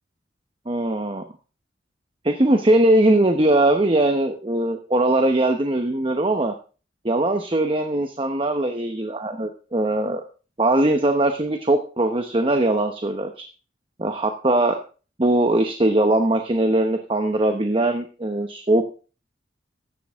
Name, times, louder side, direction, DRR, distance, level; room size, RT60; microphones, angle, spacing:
voice 1, 0.7-1.2 2.2-6.5 7.0-10.2 10.6-13.4 14.0-14.8 15.2-18.8, right 1 dB, 30° right, 6 dB, 1.0 m, -20 dB
15.0 x 12.0 x 3.6 m, 0.36 s
head